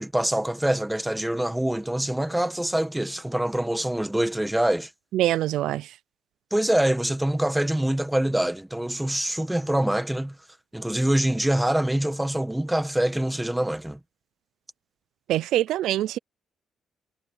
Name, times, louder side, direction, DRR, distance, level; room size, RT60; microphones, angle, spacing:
voice 1, 0.0-4.9 6.5-10.3 10.7-14.0, right 1 dB, 5° right, 1.6 m, -25 dB
voice 2, 5.1-5.9 15.3-16.2, right 13 dB, 85° right, 0.5 m, -24 dB
cardioid pair, 90°, 0 cm